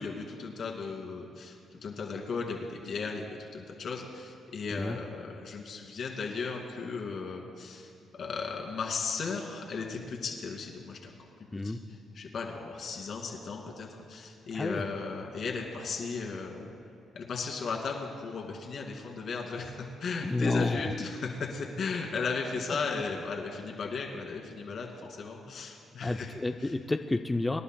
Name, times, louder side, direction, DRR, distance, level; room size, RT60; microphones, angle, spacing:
voice 1, 0.0-11.3 11.6-11.8 12.1-16.8 17.1-26.3 26.6-26.7, left 4 dB, 60° left, 0 dB, 2.4 m, -36 dB
voice 2, 20.2-20.9 22.7-22.8 26.0-27.6, left 2 dB, 15° left, 6 dB, 0.5 m, -30 dB
25.5 x 11.0 x 2.3 m, 2.6 s
cardioid pair, 90°, 0 cm